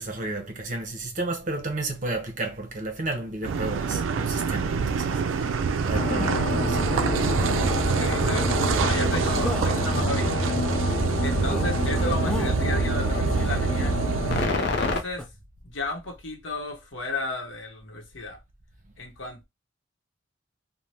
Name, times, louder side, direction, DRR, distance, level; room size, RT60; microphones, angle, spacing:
voice 1, 0.0-5.5 5.8-6.8, right 2 dB, 40° right, 0.7 m, -32 dB
Car passing by / Idling / Accelerating revving vroom, 3.4-14.5, right 5 dB, 85° right, 0.3 m, -26 dB
sound 1, 5.1-5.7 6.1-6.4 7.5-7.7 8.2-8.5 8.8-9.1 9.4-9.7 10.2-11.1 11.4-11.7 12.2-12.5 13.1-14.1 15.2-15.3, equal, 5° left, 0.4 m, -37 dB
sound 2, 5.9-15.0, left 3 dB, 60° left, 0.5 m, -28 dB
voice 2, 7.8-10.5 11.1-14.0 14.6-15.3 15.6-18.4 19.0-19.4, left 2 dB, 75° left, 0.8 m, -34 dB
2.7 x 2.1 x 3.2 m
head